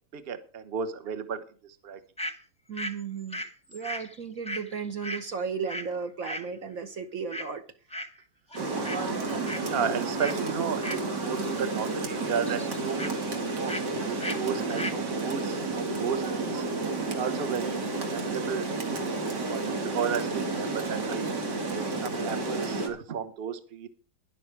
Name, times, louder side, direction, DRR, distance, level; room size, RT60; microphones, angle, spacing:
voice 1, 0.1-1.4 1.8-2.0 9.6-13.8 14.1-16.6 17.1-17.8 18.1-21.3 21.8-23.9, right 7 dB, 40° right, 10 dB, 1.2 m, -34 dB
sound 1, 2.2-2.4 2.7-5.9 6.2-6.5 7.3-7.6 7.9-8.2 8.5-9.0 9.3-9.7 10.2-10.4 10.8-11.6 11.8-13.1 13.7-13.9 14.2-14.4 14.7-15.0, left 1 dB, 5° left, 0.7 m, -37 dB
voice 2, 2.7-3.4 3.7-7.6 8.6-9.0, right 6 dB, 60° right, 7 dB, 1.3 m, -35 dB
Rain, 8.5-22.9, right 3 dB, 90° right, 2.6 m, -31 dB
11.5 x 10.5 x 4.7 m, 0.38 s
omnidirectional pair, 1.8 m